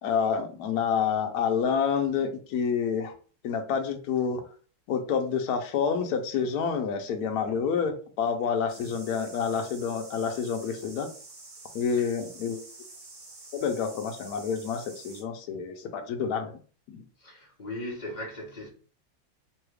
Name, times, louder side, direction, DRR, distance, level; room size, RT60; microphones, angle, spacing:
voice 1, 0.0-3.1 3.4-4.4 4.9-11.1 11.7-12.6 13.5-16.6 16.9-17.0, left 6 dB, 70° left, 0.9 m, -28 dB
sound 1, 8.7-15.2, right 3 dB, 45° right, 1.1 m, -48 dB
voice 2, 17.2-18.7, left 1 dB, 40° left, 0.6 m, -38 dB
3.3 x 2.3 x 3.2 m
omnidirectional pair, 2.2 m